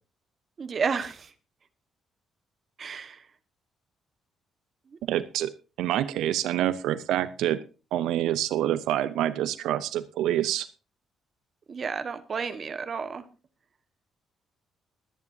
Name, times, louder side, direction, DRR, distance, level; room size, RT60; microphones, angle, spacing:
voice 1, 0.6-1.3 2.8-3.3 4.9-5.0 11.7-13.2, right 5 dB, 40° right, 10 dB, 1.4 m, -31 dB
voice 2, 5.1-5.5 5.8-7.6 7.9-10.7, right 12 dB, 90° right, 14 dB, 0.6 m, -26 dB
21.5 x 9.7 x 2.7 m, 0.33 s
cardioid pair, 120°, 0 cm